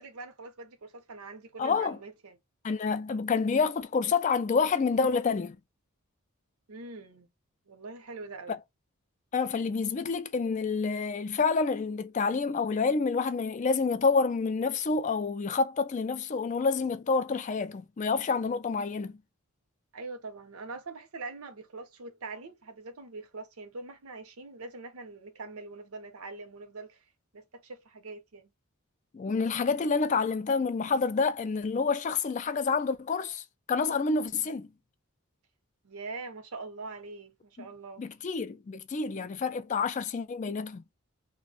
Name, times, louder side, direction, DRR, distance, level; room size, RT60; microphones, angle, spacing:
voice 1, 0.0-2.4 6.7-7.3 7.7-8.6 19.9-27.0 27.3-28.5 35.8-38.1, right 3 dB, 85° right, 0.7 m, -43 dB
voice 2, 1.6-2.0 2.6-5.6 9.3-19.1 29.1-34.7 38.0-40.8, left 4 dB, 35° left, 0.3 m, -28 dB
2.5 x 2.1 x 3.9 m
head